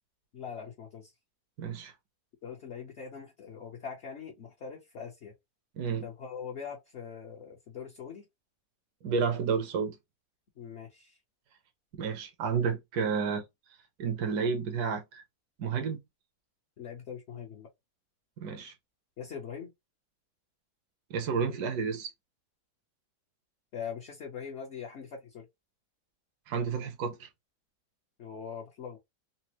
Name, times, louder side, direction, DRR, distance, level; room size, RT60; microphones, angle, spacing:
voice 1, 0.3-1.1 2.4-5.3 6.0-8.2 10.6-11.2 16.8-17.7 19.2-19.7 23.7-25.5 28.2-29.0, left 7 dB, 50° left, 0.9 m, -42 dB
voice 2, 1.6-1.9 5.8-6.1 9.0-10.0 11.9-13.4 14.0-15.2 15.6-16.0 18.4-18.7 21.1-22.1 26.5-27.3, right 5 dB, 80° right, 1.3 m, -31 dB
4.1 x 2.0 x 2.8 m
omnidirectional pair, 1.7 m